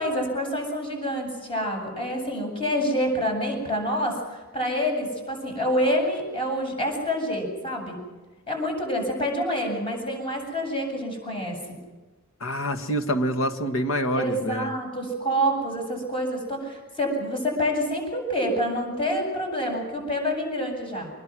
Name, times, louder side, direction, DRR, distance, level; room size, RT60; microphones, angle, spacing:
voice 1, 0.0-8.0 8.5-11.6 14.1-21.1, equal, 25° left, 2 dB, 8.0 m, -27 dB
voice 2, 12.4-14.7, equal, 90° left, 7 dB, 1.8 m, -26 dB
25.5 x 21.0 x 6.3 m, 1.2 s
head